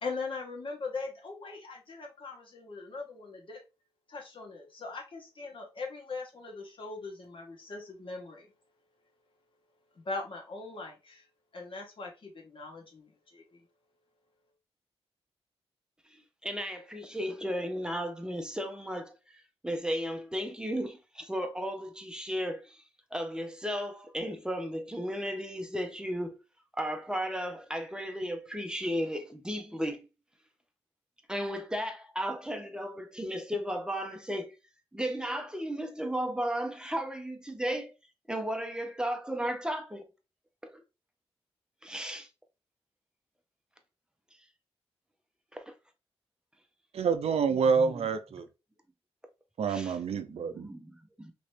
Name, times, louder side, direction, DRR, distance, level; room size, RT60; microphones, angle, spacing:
voice 1, 0.0-3.6 4.1-8.5 9.9-11.3 11.5-13.6, left 3 dB, 55° left, 1.2 m, -40 dB
voice 2, 16.1-19.2 19.6-22.8 23.1-26.4 26.8-30.1 31.3-34.6 34.9-37.9 38.3-40.1 40.7-40.8 41.8-42.3 45.5-45.7 47.6-48.1 49.7-51.3, equal, 5° right, 0.6 m, -35 dB
voice 3, 46.9-48.5 49.6-50.7, right 5 dB, 70° right, 0.5 m, -27 dB
3.0 x 2.8 x 3.1 m
cardioid pair, 80°, 11 cm